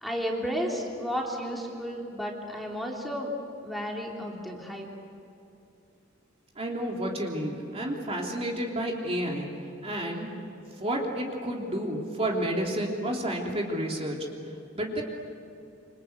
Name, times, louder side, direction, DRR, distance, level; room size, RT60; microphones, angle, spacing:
voice 1, 0.0-3.3 3.6-4.9, equal, ahead, -2 dB, 3.3 m, -33 dB
voice 2, 6.5-9.5 9.8-10.3 10.6-14.3 14.7-15.0, right 1 dB, 30° right, 0 dB, 3.2 m, -30 dB
27.5 x 26.5 x 8.2 m, 2.7 s
head